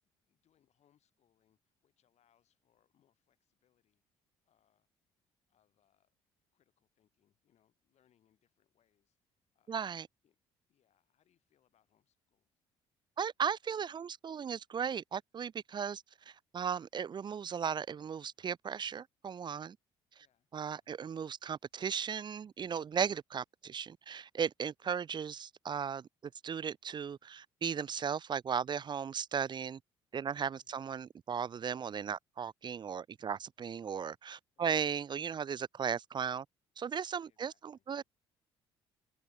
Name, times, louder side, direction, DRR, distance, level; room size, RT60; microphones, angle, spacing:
voice 1, 0.0-4.0 4.4-4.9 5.5-6.2 6.5-9.9 10.2-10.4 10.7-12.5 20.2-21.0 30.6-30.8 34.6-34.8 37.2-38.1, left 10 dB, 60° left, 7.2 m, -77 dB
voice 2, 9.7-10.1 13.2-19.8 20.5-29.8 30.1-36.5 36.8-38.0, right 7 dB, 35° right, 0.5 m, -36 dB
hypercardioid pair, 60°, 13 cm